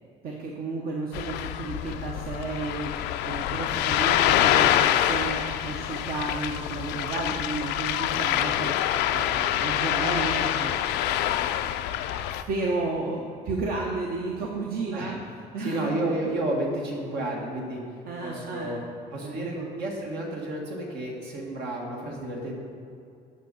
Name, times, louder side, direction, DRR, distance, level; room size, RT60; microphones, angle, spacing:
voice 1, 0.2-10.8 12.3-15.2 15.5-16.2 18.1-18.8 19.2-19.7, right 3 dB, 60° right, -1 dB, 1.0 m, -32 dB
Ocean, 1.1-12.4, left 11 dB, 85° left, 0.4 m, -26 dB
voice 2, 15.6-17.8 18.2-18.8 19.1-22.6, right 1 dB, 80° right, -1 dB, 2.0 m, -31 dB
11.0 x 5.8 x 4.2 m, 2.5 s
cardioid pair, 110°, 17 cm